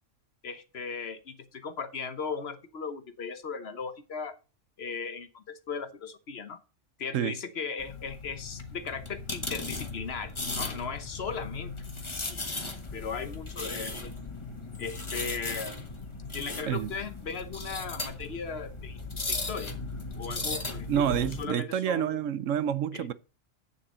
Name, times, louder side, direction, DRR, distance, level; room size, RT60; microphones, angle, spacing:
voice 1, 0.4-4.3 4.8-6.6 7.0-11.7 12.3-12.4 12.9-14.2 14.8-15.8 16.3-19.0 19.3-19.8 20.2-22.2 22.9-23.0, left 5 dB, 55° left, 1.1 m, -37 dB
sound 1, 7.8-21.4, left 3 dB, 25° left, 1.3 m, -37 dB
voice 2, 20.9-23.1, right 9 dB, 75° right, 1.0 m, -28 dB
8.3 x 7.2 x 5.1 m
omnidirectional pair, 1.4 m